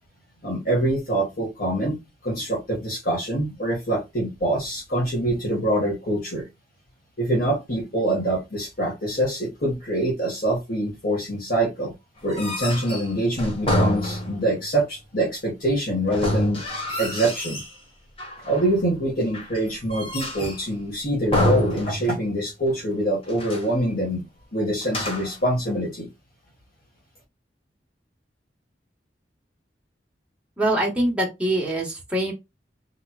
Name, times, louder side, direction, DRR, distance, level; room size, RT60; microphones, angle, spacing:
voice 1, 0.4-2.0 2.2-6.4 7.2-11.9 12.2-16.6 17.0-17.6 18.4-24.2 24.5-26.1, right 1 dB, 55° left, 1.6 m, -25 dB
sound 1, 12.2-14.6 16.1-17.8 18.2-18.8 19.3-20.7 21.3-22.4 22.7-22.8 23.2-23.8 24.8-25.5, left 1 dB, 30° left, 1.2 m, -27 dB
voice 2, 30.6-32.3, right 1 dB, 5° right, 1.3 m, -24 dB
3.7 x 3.0 x 2.3 m
head